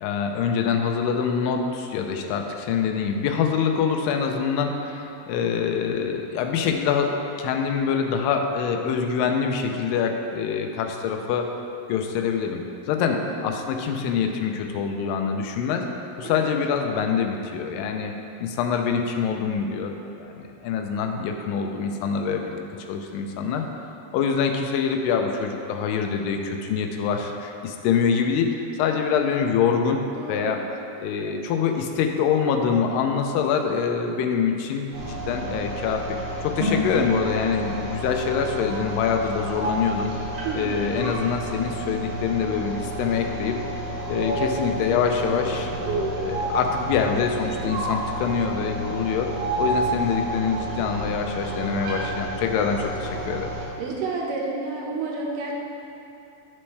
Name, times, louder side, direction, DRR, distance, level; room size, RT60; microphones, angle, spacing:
voice 1, 0.0-11.5 11.9-12.6 12.9-13.2 13.4-15.8 16.2-18.1 18.4-22.6 22.9-23.7 24.1-30.0 30.3-30.6 31.0-40.1 40.6-43.6 44.1-45.7 46.2-49.3 49.6-53.5, left 6 dB, 80° left, 4 dB, 2.2 m, -25 dB
voice 2, 13.1-13.4 16.2-16.5 30.2-30.6 40.4-40.9 53.8-55.5, right 3 dB, 75° right, -1 dB, 2.2 m, -30 dB
sound 1, 34.9-53.7, right 1 dB, 60° right, 1.8 m, -30 dB
8.9 x 5.3 x 3.3 m, 2.8 s
omnidirectional pair, 4.1 m